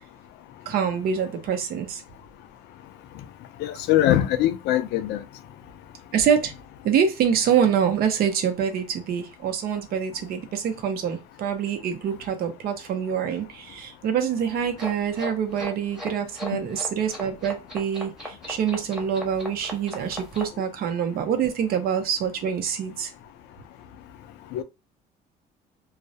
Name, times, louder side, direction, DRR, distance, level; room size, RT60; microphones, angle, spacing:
voice 1, 0.7-2.0 6.1-6.5 6.8-23.1, right 8 dB, 65° right, 0.6 m, -25 dB
voice 2, 3.6-5.2 24.5-24.6, left 13 dB, 85° left, 0.4 m, -22 dB
sound 1, 14.8-20.5, left 1 dB, 5° right, 1.0 m, -37 dB
2.3 x 2.0 x 2.7 m
cardioid pair, 110°, 17 cm